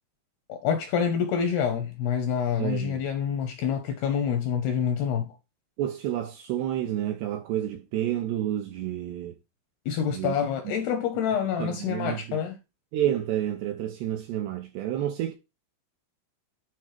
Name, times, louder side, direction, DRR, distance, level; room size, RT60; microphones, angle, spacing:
voice 1, 0.5-5.4 9.9-12.6, left 7 dB, 75° left, 2.4 m, -27 dB
voice 2, 2.6-3.0 5.8-9.3 10.1-10.3 11.6-12.4 12.9-15.3, right 12 dB, 80° right, 2.4 m, -29 dB
10.0 x 4.2 x 5.0 m
omnidirectional pair, 5.7 m